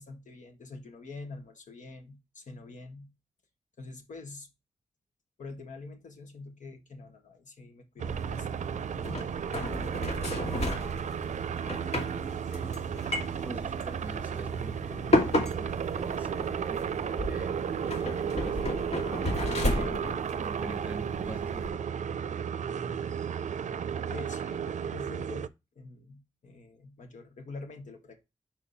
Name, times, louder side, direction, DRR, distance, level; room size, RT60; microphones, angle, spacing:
voice 1, 0.0-3.1 3.8-4.5 5.4-8.9 24.0-25.5 25.7-28.2, left 3 dB, 80° left, 4 dB, 1.5 m, -45 dB
sound 1, 8.0-25.5, right 7 dB, 75° right, 0.5 m, -33 dB
sound 2, 8.1-21.7, left 1 dB, 60° left, 2.0 m, -34 dB
voice 2, 11.6-12.7 13.4-16.8 17.3-20.1 20.4-22.0, right 1 dB, 15° right, 8 dB, 1.5 m, -45 dB
5.7 x 4.4 x 4.0 m, 0.24 s
wide cardioid pair, 90°, 12 cm